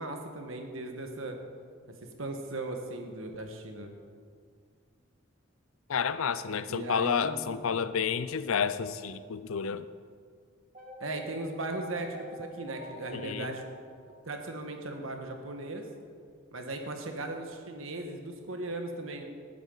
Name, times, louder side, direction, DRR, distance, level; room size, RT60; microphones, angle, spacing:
voice 1, 0.0-1.4 2.2-3.9 6.7-7.4 11.0-13.6 14.3-15.9 16.5-19.2, right 2 dB, 70° right, 4 dB, 1.5 m, -37 dB
voice 2, 5.9-9.9 13.1-13.5, left 6 dB, 80° left, 14 dB, 0.5 m, -30 dB
sound 1, 10.7-14.9, equal, 35° right, 1.9 m, -49 dB
18.5 x 9.3 x 4.0 m, 2.1 s
head